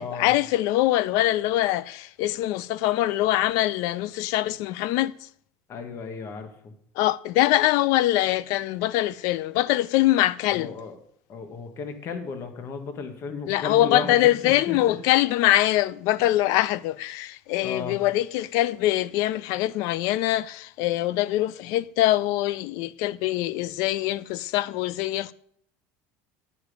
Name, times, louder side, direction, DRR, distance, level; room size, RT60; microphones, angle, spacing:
voice 1, 0.0-5.1 7.0-10.7 13.5-25.3, left 15 dB, 65° left, 0.4 m, -23 dB
voice 2, 5.7-6.7 10.5-11.0 11.3-15.0 17.6-18.0, left 5 dB, 45° left, 1.4 m, -34 dB
9.4 x 5.2 x 6.6 m
supercardioid pair, 110°, 6 cm